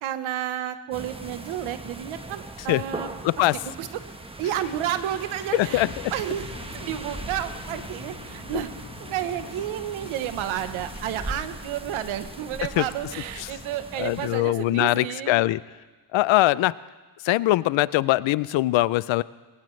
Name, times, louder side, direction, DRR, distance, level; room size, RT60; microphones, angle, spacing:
voice 1, 0.0-3.1 3.4-3.9 4.4-8.7 9.1-15.6, right 11 dB, 85° right, 11 dB, 1.1 m, -31 dB
sound 1, 0.9-14.4, right 2 dB, 10° right, 1.1 m, -39 dB
voice 2, 3.2-3.6 5.5-5.9 12.8-12.9 13.4-13.5 14.0-15.6 16.1-16.7 17.2-19.2, left 17 dB, 75° left, 19 dB, 0.6 m, -22 dB
Boom, 5.6-15.2, left 4 dB, 40° left, 5.5 m, -46 dB
21.0 x 18.0 x 3.2 m, 1.3 s
cardioid pair, 90°, 47 cm